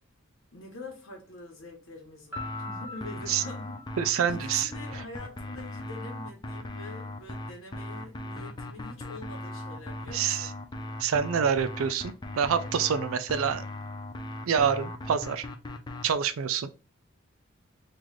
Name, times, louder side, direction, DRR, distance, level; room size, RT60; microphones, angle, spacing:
voice 1, 0.5-10.6, left 2 dB, 85° left, 1.1 m, -45 dB
Piano, 2.3-5.1, left 3 dB, 10° right, 1.0 m, -43 dB
sound 1, 2.4-16.1, left 1 dB, 20° left, 0.4 m, -38 dB
voice 2, 4.0-4.7 10.1-10.5 11.0-13.6 14.5-15.5 16.0-16.7, right 7 dB, 85° right, 0.4 m, -27 dB
3.1 x 2.4 x 3.9 m
head